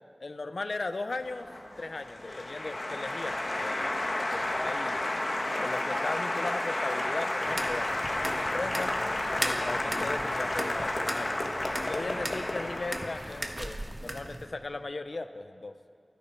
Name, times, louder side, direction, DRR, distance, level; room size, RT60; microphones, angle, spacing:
voice 1, 0.2-1.5 1.8-5.0 5.6-8.9 9.4-11.4 11.8-15.7, left 3 dB, 80° left, 10 dB, 0.8 m, -37 dB
Applause, 1.2-13.7, left 1 dB, 60° left, 1.5 m, -32 dB
sound 1, 7.5-14.5, right 1 dB, 35° right, 1.4 m, -38 dB
29.5 x 10.5 x 4.6 m, 2.3 s
wide cardioid pair, 60°, 0 cm